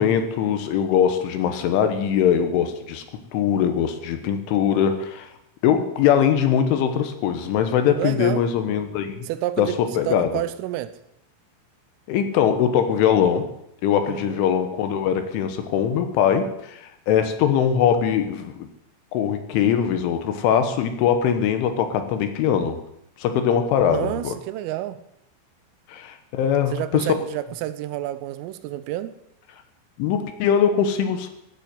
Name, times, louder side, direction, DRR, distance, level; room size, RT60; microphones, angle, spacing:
voice 1, 0.0-3.0 3.3-5.3 5.6-9.3 9.6-10.3 12.1-13.5 13.8-18.7 19.1-22.8 23.2-24.3 25.9-27.1 30.0-31.3, left 8 dB, 75° left, 3.6 m, -21 dB
voice 2, 8.0-8.5 9.2-9.8 10.1-11.0 14.1-14.4 23.9-25.0 26.7-29.2, right 14 dB, 90° right, 3.4 m, -29 dB
15.5 x 8.4 x 7.7 m
omnidirectional pair, 5.7 m